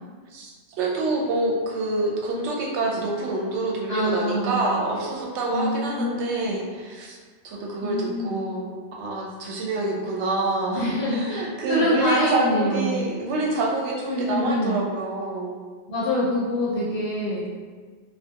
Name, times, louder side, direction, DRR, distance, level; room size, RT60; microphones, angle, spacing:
voice 1, 0.8-7.2 7.4-15.6, right 2 dB, 80° right, -1 dB, 0.9 m, -27 dB
voice 2, 3.9-4.8 5.5-6.5 7.8-8.4 10.8-13.1 14.1-14.8 15.9-17.5, left 1 dB, 65° left, -8 dB, 0.8 m, -26 dB
2.2 x 2.2 x 2.7 m, 1.5 s
omnidirectional pair, 1.2 m